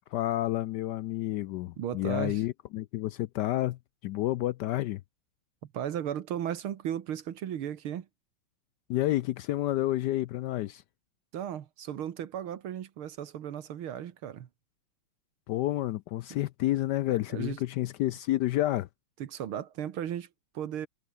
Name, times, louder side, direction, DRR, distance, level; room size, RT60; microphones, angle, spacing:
voice 1, 0.1-5.0 8.9-10.8 15.5-18.9, left 15 dB, 80° left, 0.9 m, -30 dB
voice 2, 1.8-2.4 5.7-8.1 11.3-14.5 17.1-17.6 19.2-20.3 20.5-20.9, right 10 dB, 80° right, 2.1 m, -35 dB
omnidirectional pair, 2.3 m